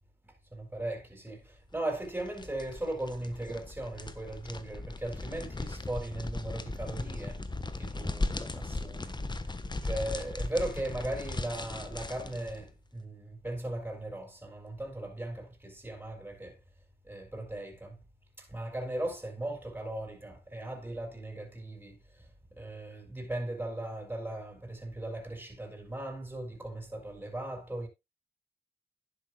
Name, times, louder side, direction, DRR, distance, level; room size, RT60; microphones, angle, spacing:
voice 1, 0.2-7.4 7.8-9.2 9.8-16.6 17.0-18.0 18.4-27.9, right 1 dB, 10° right, 4.9 m, -38 dB
sound 1, 2.0-12.6, left 2 dB, 25° left, 1.3 m, -37 dB
11.5 x 10.5 x 2.3 m
cardioid pair, 65°, 17 cm